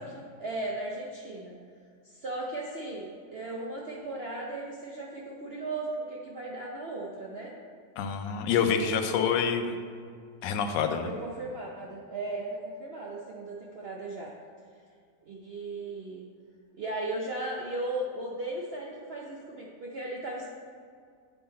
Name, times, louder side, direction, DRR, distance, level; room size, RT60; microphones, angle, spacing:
voice 1, 0.0-1.5 2.1-7.5 8.6-9.3 11.0-14.3 15.3-16.2 16.7-20.5, right 2 dB, 85° right, -3 dB, 0.5 m, -36 dB
voice 2, 8.0-9.8 10.4-11.1, left 7 dB, 80° left, 7 dB, 1.2 m, -27 dB
8.5 x 3.8 x 4.1 m, 2.2 s
omnidirectional pair, 1.9 m